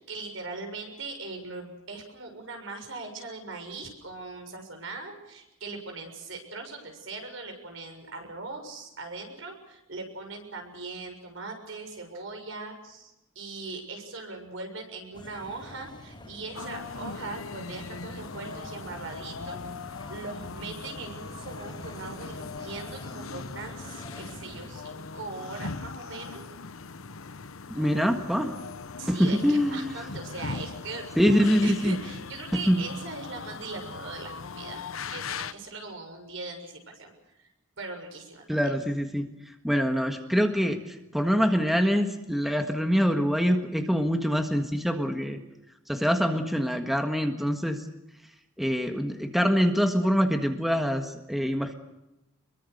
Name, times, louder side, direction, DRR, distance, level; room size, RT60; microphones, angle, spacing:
voice 1, 0.0-19.6 19.8-26.4 29.0-34.8 35.1-37.1 37.4-37.5 37.8-38.6, right 3 dB, 70° right, 4 dB, 6.8 m, -40 dB
sound 1, 15.1-24.7, left 1 dB, 25° left, 4.6 m, -47 dB
sound 2, 16.5-35.5, left 4 dB, 90° left, 0.9 m, -40 dB
voice 2, 27.7-28.6 29.1-30.0 31.1-32.0 32.5-32.8 38.5-45.4 45.9-47.9 48.6-51.7, equal, ahead, 5 dB, 1.6 m, -25 dB
26.0 x 22.5 x 6.7 m, 0.90 s
head